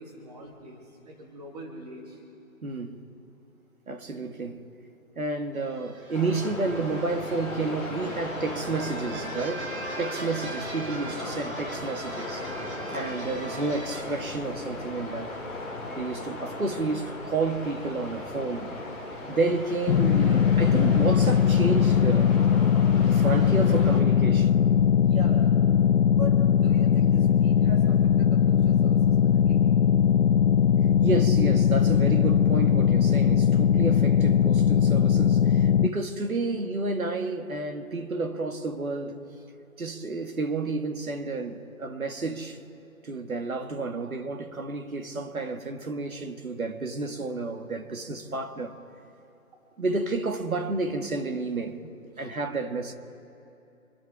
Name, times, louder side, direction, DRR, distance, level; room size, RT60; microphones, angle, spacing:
voice 1, 0.0-2.2 12.9-13.1 20.2-20.4 25.0-25.5 26.1-29.6 52.2-52.3, right 1 dB, 30° right, 2.7 m, -42 dB
voice 2, 2.6-3.0 3.9-4.6 5.2-12.5 12.9-15.4 16.0-18.8 19.3-22.4 23.0-24.5 31.0-39.2 39.8-42.6 43.0-48.7 49.8-51.9 52.2-52.9, right 3 dB, 75° right, 2.1 m, -30 dB
sound 1, 5.5-14.0, right 2 dB, 50° right, 3.2 m, -40 dB
sound 2, 6.1-24.0, left 2 dB, ahead, 1.9 m, -37 dB
sound 3, 19.9-35.9, left 8 dB, 65° left, 0.6 m, -20 dB
26.5 x 10.5 x 4.9 m
figure-of-eight pair, 155°, 42 cm